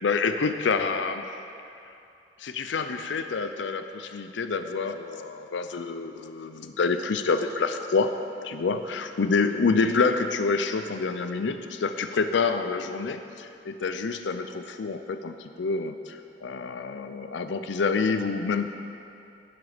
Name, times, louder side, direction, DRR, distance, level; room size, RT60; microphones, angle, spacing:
voice 1, 0.0-1.4 1.7-2.0 2.4-8.1 8.4-18.7, left 4 dB, 80° left, 9 dB, 0.5 m, -27 dB
11.0 x 10.5 x 5.0 m, 2.6 s
head